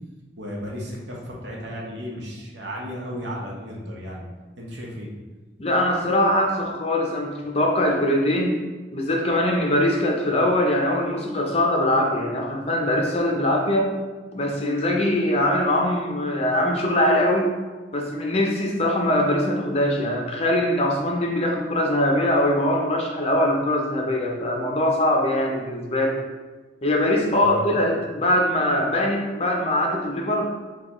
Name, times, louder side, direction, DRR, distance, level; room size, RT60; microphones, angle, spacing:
voice 1, 0.4-4.2 4.6-5.1 27.3-27.6 28.0-28.1, equal, 70° right, -2 dB, 0.9 m, -34 dB
voice 2, 5.6-8.6 8.9-13.9 14.3-17.5 17.9-26.2 26.8-30.5, left 1 dB, 35° left, 0 dB, 0.6 m, -22 dB
6.4 x 2.3 x 3.0 m, 1.3 s
head